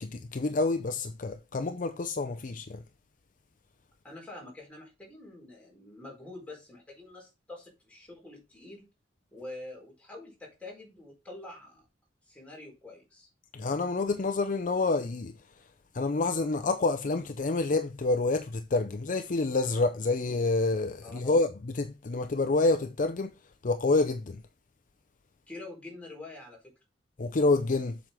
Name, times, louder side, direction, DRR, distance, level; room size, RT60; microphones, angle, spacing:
voice 1, 0.0-2.8 13.5-15.3 15.9-23.3 23.6-24.4 27.2-28.0, left 3 dB, 45° left, 0.5 m, -28 dB
voice 2, 4.0-8.9 9.3-11.8 12.3-13.3 21.0-21.4 25.5-26.7, left 2 dB, 10° left, 4.3 m, -46 dB
7.7 x 6.2 x 3.7 m
head